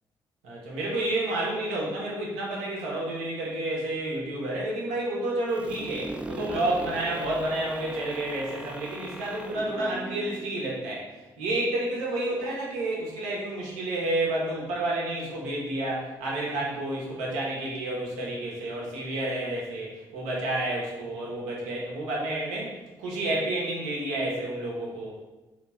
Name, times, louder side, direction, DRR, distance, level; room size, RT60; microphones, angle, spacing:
voice 1, 0.4-11.0 11.4-22.7 23.0-25.1, right 1 dB, 75° right, -4 dB, 0.8 m, -30 dB
sound 1, 5.5-11.2, right 1 dB, 10° right, 0.3 m, -39 dB
3.0 x 2.5 x 3.5 m, 1.1 s
hypercardioid pair, 40°, 12 cm